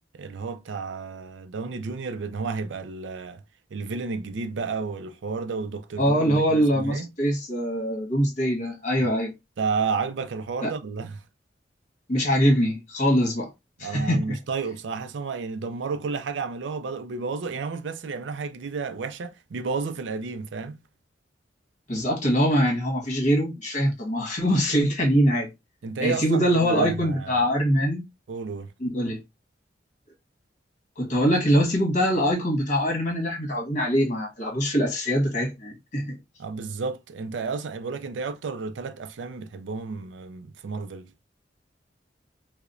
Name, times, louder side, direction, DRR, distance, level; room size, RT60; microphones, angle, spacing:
voice 1, 0.1-3.4 3.7-7.1 9.0-9.1 9.6-11.2 13.8-20.8 25.8-27.4 28.3-28.7 36.4-41.1, right 4 dB, 75° right, 0.4 m, -32 dB
voice 2, 6.0-9.3 10.6-10.7 12.1-13.5 13.8-14.4 21.9-25.5 26.0-28.0 28.8-29.2 31.0-36.2, equal, 45° left, 1.4 m, -23 dB
4.7 x 2.1 x 2.6 m
head